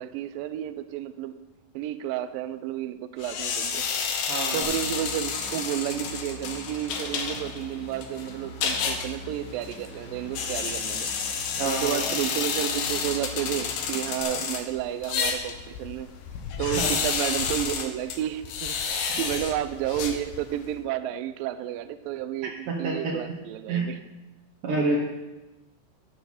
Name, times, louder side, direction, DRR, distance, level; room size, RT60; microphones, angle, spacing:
voice 1, 0.0-1.3 1.7-3.8 4.5-11.1 11.7-16.1 16.6-24.0, right 12 dB, 80° right, 12 dB, 2.1 m, -31 dB
sound 1, 3.2-20.7, left 6 dB, 70° left, 2.5 m, -31 dB
voice 2, 4.3-4.7 11.6-12.0 14.3-14.4 16.6-16.9 19.1-19.2 22.7-23.0 23.7-23.9 24.6-25.0, right 3 dB, 65° right, -4 dB, 2.6 m, -28 dB
sound 2, 4.6-14.2, left 1 dB, 5° left, 1.1 m, -44 dB
15.5 x 6.7 x 4.4 m, 1.1 s
omnidirectional pair, 4.4 m